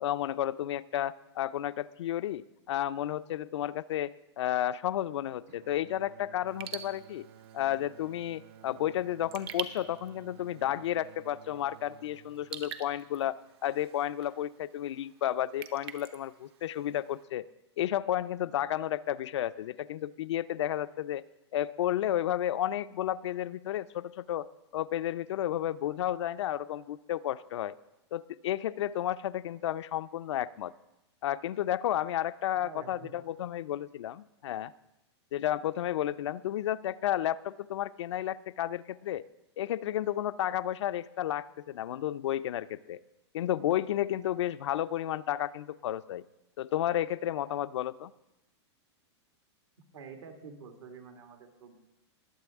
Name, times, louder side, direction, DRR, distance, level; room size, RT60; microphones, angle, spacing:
voice 1, 0.0-7.3 7.5-13.4 13.6-17.5 17.8-21.2 21.5-24.5 24.7-27.7 28.1-30.7 31.2-34.7 35.3-39.2 39.6-43.0 43.3-46.2 46.6-48.1, left 12 dB, 75° left, 14 dB, 0.5 m, -32 dB
Bowed string instrument, 5.5-13.7, right 10 dB, 35° right, 0.4 m, -55 dB
Raindrop / Drip, 6.5-17.2, right 9 dB, 60° right, 0.9 m, -47 dB
voice 2, 32.6-33.1 49.9-51.8, right 5 dB, 75° right, 4 dB, 2.0 m, -47 dB
21.0 x 7.7 x 3.5 m, 0.96 s
hypercardioid pair, 140°, 15 cm